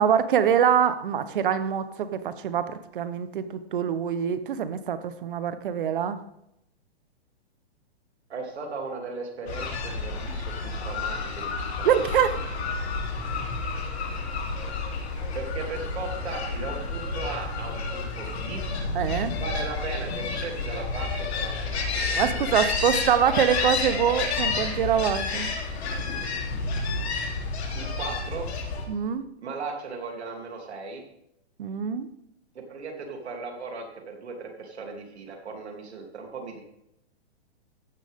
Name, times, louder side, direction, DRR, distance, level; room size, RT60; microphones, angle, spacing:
voice 1, 0.0-6.2 11.8-12.3 18.9-19.3 22.1-25.5 28.9-29.2 31.6-32.1, right 8 dB, 55° right, 12 dB, 1.0 m, -24 dB
voice 2, 8.3-12.1 15.3-18.6 19.3-22.5 27.7-28.5 29.4-31.0 32.5-36.6, right 4 dB, 85° right, 2 dB, 3.2 m, -37 dB
sound 1, 9.5-28.8, left 3 dB, 80° left, 3.4 m, -30 dB
14.5 x 10.0 x 3.7 m, 0.80 s
hypercardioid pair, 170°, 32 cm